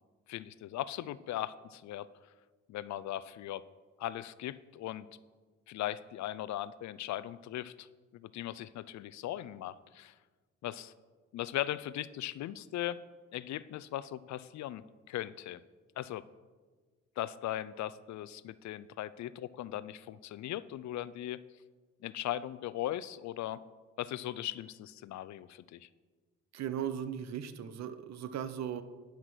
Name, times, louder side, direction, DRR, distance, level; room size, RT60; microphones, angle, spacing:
voice 1, 0.3-2.1 2.7-3.6 4.0-5.1 5.7-7.9 8.1-10.1 10.6-10.9 11.3-13.0 13.3-14.8 15.1-15.6 16.0-16.2 17.2-21.4 22.0-23.6 24.0-25.9, left 13 dB, 65° left, 16 dB, 0.5 m, -38 dB
voice 2, 26.5-28.8, right 9 dB, 60° right, 12 dB, 0.7 m, -37 dB
10.5 x 5.9 x 6.1 m, 1.4 s
cardioid pair, 90°, 30 cm